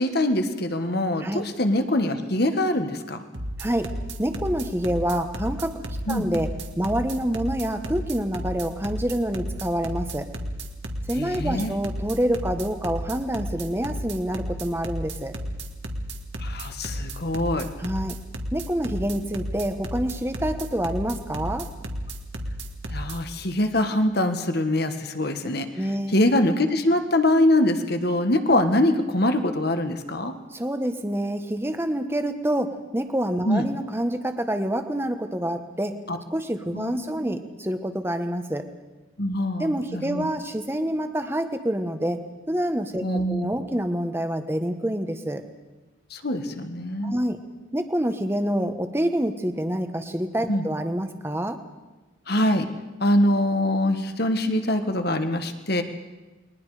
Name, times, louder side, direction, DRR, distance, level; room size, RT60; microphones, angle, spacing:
voice 1, 0.0-3.2 6.1-6.3 11.2-11.7 16.4-17.7 22.9-25.7 26.1-30.3 33.4-33.7 36.1-36.2 36.7-37.0 37.3-37.4 39.2-40.3 43.0-43.5 46.1-47.1 50.5-50.6 52.3-52.7 53.0-55.8, left 1 dB, 50° left, 8 dB, 1.6 m, -23 dB
sound 1, 3.3-23.2, equal, 65° right, 2.2 m, -32 dB
voice 2, 3.6-3.9 4.2-6.5 6.8-10.3 11.1-15.3 17.8-18.2 18.5-21.7 25.8-26.1 28.5-28.6 30.5-36.0 36.3-38.7 39.6-42.2 42.5-43.0 43.3-45.4 47.0-47.4 47.7-51.6, right 1 dB, 10° right, 7 dB, 1.3 m, -27 dB
29.5 x 22.0 x 5.0 m, 1.2 s
head